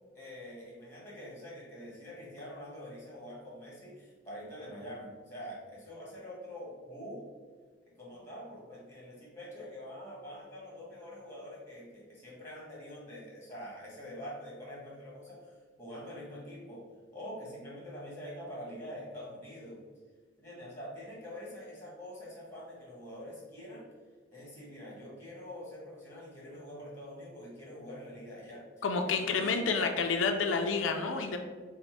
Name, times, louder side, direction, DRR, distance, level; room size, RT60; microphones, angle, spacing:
voice 1, 0.1-7.3 8.0-16.8 17.1-19.8 20.4-23.9 24.3-28.8 29.3-29.6, equal, 15° left, -6 dB, 1.5 m, -45 dB
voice 2, 28.8-31.4, left 4 dB, 85° left, 4 dB, 0.4 m, -29 dB
4.1 x 2.1 x 4.4 m, 1.5 s
head